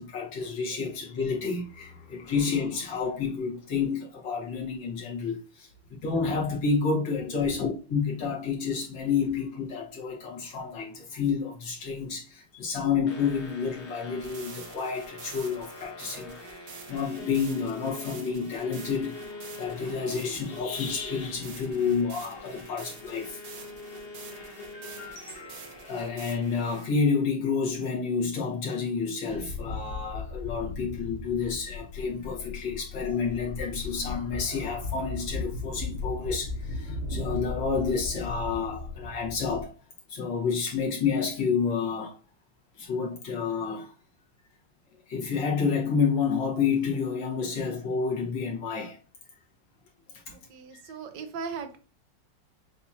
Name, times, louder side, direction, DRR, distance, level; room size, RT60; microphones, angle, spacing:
voice 1, 0.0-23.4 24.7-39.7 40.1-42.2 42.8-43.9 45.1-49.0 50.3-50.4, left 5 dB, 80° left, 2.1 m, -30 dB
voice 2, 7.3-7.6 50.3-51.8, right 5 dB, 75° right, 1.3 m, -38 dB
sound 1, 13.1-26.8, left 2 dB, 45° left, 1.0 m, -45 dB
sound 2, 14.2-26.9, right 5 dB, 55° right, 1.1 m, -47 dB
sound 3, 29.3-39.6, left 3 dB, 60° left, 2.0 m, -36 dB
7.0 x 2.8 x 2.4 m
omnidirectional pair, 2.0 m